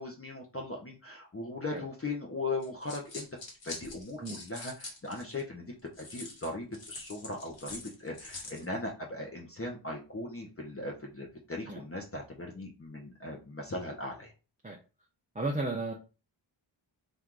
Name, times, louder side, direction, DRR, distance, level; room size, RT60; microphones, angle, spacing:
voice 1, 0.0-3.3 3.6-14.3, left 2 dB, 30° left, -1 dB, 0.8 m, -39 dB
sound 1, 2.6-5.4 6.0-8.7, left 3 dB, 65° left, 1.5 m, -44 dB
voice 2, 15.3-15.9, right 2 dB, 15° right, -1 dB, 0.6 m, -33 dB
3.8 x 2.6 x 4.5 m, 0.32 s
wide cardioid pair, 115°, 48 cm